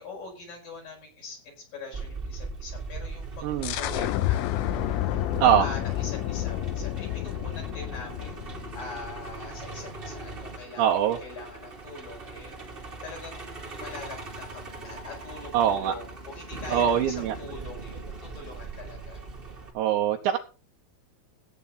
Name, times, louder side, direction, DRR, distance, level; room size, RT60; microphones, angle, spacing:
voice 1, 0.0-5.2 5.6-8.5 8.7-19.2, left 3 dB, 45° left, -1 dB, 6.7 m, -43 dB
Truck, 1.9-19.7, right 3 dB, 20° right, 1.8 m, -40 dB
voice 2, 3.4-3.8 5.4-5.7 10.8-11.2 15.5-15.9 16.7-17.4 19.7-20.4, right 9 dB, 75° right, 2 dB, 3.0 m, -23 dB
sound 1, 3.6-9.1, left 15 dB, 80° left, 3.2 m, -30 dB
15.0 x 9.4 x 4.1 m, 0.34 s
omnidirectional pair, 5.6 m